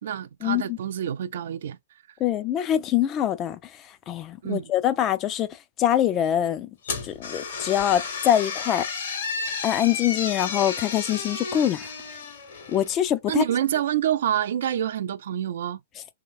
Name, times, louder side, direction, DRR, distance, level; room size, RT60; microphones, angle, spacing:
voice 1, 0.0-1.8 4.4-4.7 13.3-15.8, right 11 dB, 65° right, 0.4 m, -27 dB
voice 2, 2.2-3.6 4.1-5.5 5.8-6.7 7.0-8.9 9.6-11.9 12.7-13.4, left 11 dB, 30° left, 0.4 m, -24 dB
sound 1, 6.8-13.0, left 5 dB, 65° left, 1.3 m, -32 dB
3.0 x 2.8 x 2.4 m
hypercardioid pair, 125°, 0 cm